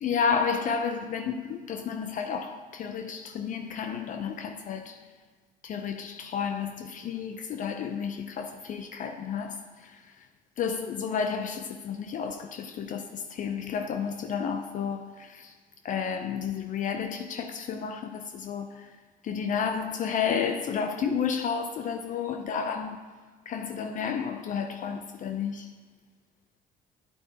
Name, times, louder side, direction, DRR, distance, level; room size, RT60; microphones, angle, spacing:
voice 1, 0.0-5.0 5.6-10.0 10.6-15.5 15.8-18.9 19.2-23.1 23.5-25.7, left 6 dB, 50° left, 0.5 m, -31 dB
9.2 x 8.3 x 2.8 m
cardioid pair, 110°, 17 cm